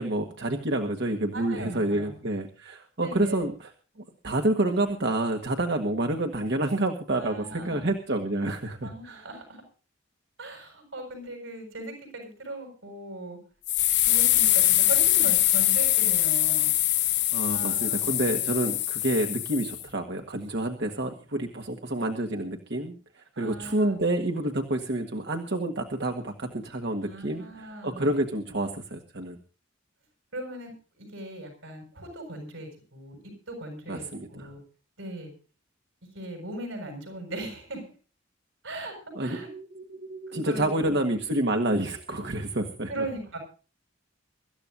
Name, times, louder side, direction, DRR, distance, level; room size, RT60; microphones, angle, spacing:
voice 1, 0.0-3.7 4.2-9.2 17.3-29.4 33.9-34.5 39.1-43.1, right 1 dB, 60° right, 4 dB, 1.7 m, -28 dB
voice 2, 1.3-2.1 3.0-3.4 7.2-7.9 8.8-9.6 10.4-13.4 14.0-16.7 17.5-18.0 23.3-24.0 27.0-28.1 30.3-33.2 33.5-34.0 34.3-34.6 35.0-35.3 36.1-37.9 38.6-39.5 40.5-40.9 42.9-43.4, right 1 dB, 85° right, 4 dB, 7.3 m, -38 dB
sound 1, 13.7-19.8, left 14 dB, 60° left, 0.9 m, -23 dB
24.5 x 14.0 x 2.7 m, 0.37 s
head